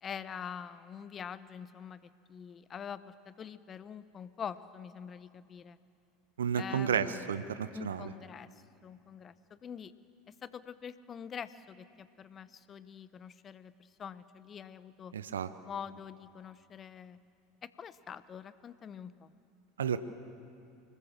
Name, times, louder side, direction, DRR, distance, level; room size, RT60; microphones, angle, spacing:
voice 1, 0.0-5.8 6.5-7.3 7.7-8.5 8.8-9.9 10.4-15.1 15.6-17.2 17.6-19.3, left 7 dB, 35° left, 15 dB, 1.0 m, -45 dB
voice 2, 6.4-8.1 15.1-15.5 19.8-20.0, right 7 dB, 80° right, 13 dB, 0.8 m, -32 dB
25.0 x 20.5 x 7.5 m, 2.5 s
figure-of-eight pair, 75°, 0 cm